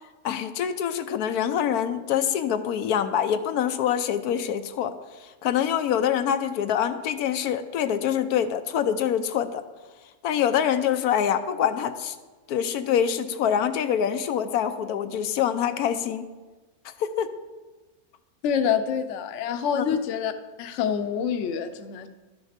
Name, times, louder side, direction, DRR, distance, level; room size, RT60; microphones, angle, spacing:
voice 1, 0.2-4.9 5.2-9.6 10.2-12.2 12.5-16.3 16.8-17.3 19.8-20.0, left 9 dB, 90° left, 9 dB, 1.1 m, -25 dB
voice 2, 18.4-20.3 20.6-22.1, left 7 dB, 60° left, 9 dB, 0.9 m, -26 dB
12.5 x 6.3 x 5.0 m, 1.2 s
omnidirectional pair, 1.6 m